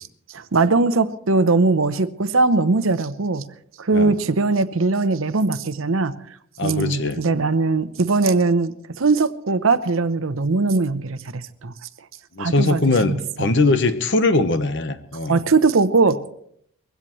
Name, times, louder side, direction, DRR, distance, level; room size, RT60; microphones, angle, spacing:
voice 1, 0.3-3.5 3.8-6.2 6.6-11.7 12.4-13.5 15.3-16.3, right 3 dB, 80° right, 13 dB, 0.8 m, -20 dB
voice 2, 6.6-7.2 12.3-15.4, left 3 dB, 60° left, 10 dB, 1.1 m, -21 dB
22.0 x 16.0 x 3.1 m, 0.69 s
head